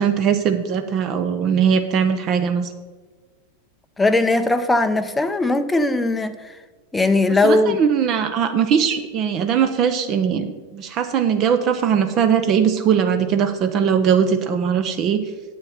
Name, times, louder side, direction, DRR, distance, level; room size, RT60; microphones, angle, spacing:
voice 1, 0.0-2.7 7.4-15.2, right 7 dB, 35° right, 9 dB, 0.7 m, -20 dB
voice 2, 4.0-6.5 6.9-7.8, left 2 dB, 10° left, 8 dB, 0.6 m, -19 dB
9.6 x 8.3 x 4.2 m, 1.3 s
figure-of-eight pair, 90°, 0 cm